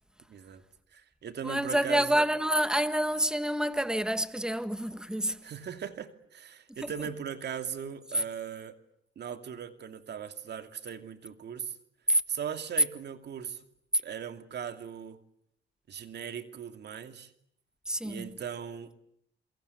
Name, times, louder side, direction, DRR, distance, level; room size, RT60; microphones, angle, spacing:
voice 1, 0.3-0.6 0.9-2.2 5.4-8.8 9.2-11.7 12.3-13.6 14.0-15.2 15.9-17.3 18.0-18.9, right 8 dB, 60° right, 2.6 m, -39 dB
voice 2, 1.4-5.4 6.7-6.9 8.1-8.2 12.1-12.2 17.9-18.3, right 1 dB, 5° right, 1.7 m, -28 dB
28.0 x 23.5 x 8.4 m
cardioid pair, 90°, 20 cm